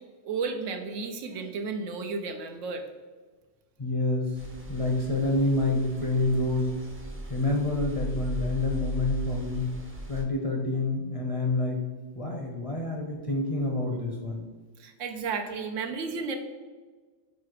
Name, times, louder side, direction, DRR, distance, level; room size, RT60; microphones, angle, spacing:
voice 1, 0.2-2.8 14.8-16.4, right 4 dB, 80° right, 5 dB, 1.0 m, -33 dB
voice 2, 3.8-6.7 7.3-9.7 10.1-11.8 12.1-14.5, left 2 dB, 35° left, 0 dB, 0.6 m, -28 dB
sound 1, 4.3-10.2, right 1 dB, 15° right, 0.5 m, -38 dB
4.7 x 4.2 x 4.8 m, 1.4 s
omnidirectional pair, 1.3 m